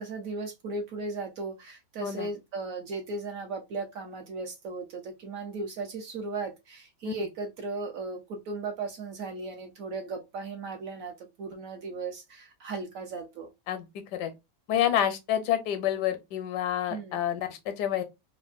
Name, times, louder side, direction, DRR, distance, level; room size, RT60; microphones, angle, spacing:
voice 1, 0.0-13.5 16.9-17.2, right 3 dB, 65° right, 0.9 m, -36 dB
voice 2, 14.7-18.0, left 10 dB, 85° left, 1.3 m, -28 dB
3.2 x 2.1 x 2.4 m
omnidirectional pair, 1.8 m